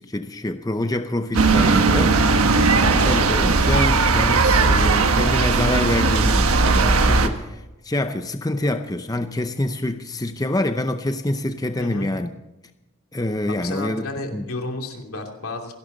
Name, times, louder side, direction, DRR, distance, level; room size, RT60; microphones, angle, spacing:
voice 1, 0.0-12.3 13.1-14.4, left 1 dB, 15° left, 0.6 m, -26 dB
sound 1, 1.3-7.3, right 3 dB, 80° right, 1.3 m, -17 dB
voice 2, 11.8-12.1 13.5-15.7, left 2 dB, 80° left, 2.9 m, -32 dB
28.0 x 11.5 x 4.0 m
head